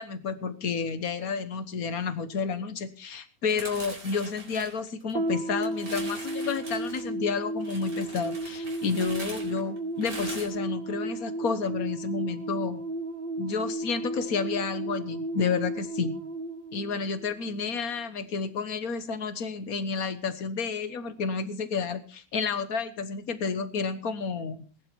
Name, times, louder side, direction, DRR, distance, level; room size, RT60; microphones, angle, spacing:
voice 1, 0.0-12.8 13.4-16.1 16.7-24.6, left 5 dB, 60° left, 12 dB, 1.6 m, -31 dB
sound 1, 3.5-5.3 5.6-7.0 7.6-10.5, right 2 dB, 60° right, 4.8 m, -42 dB
sound 2, 5.1-17.7, right 1 dB, 35° right, 1.3 m, -34 dB
19.5 x 11.0 x 4.5 m, 0.39 s
omnidirectional pair, 1.8 m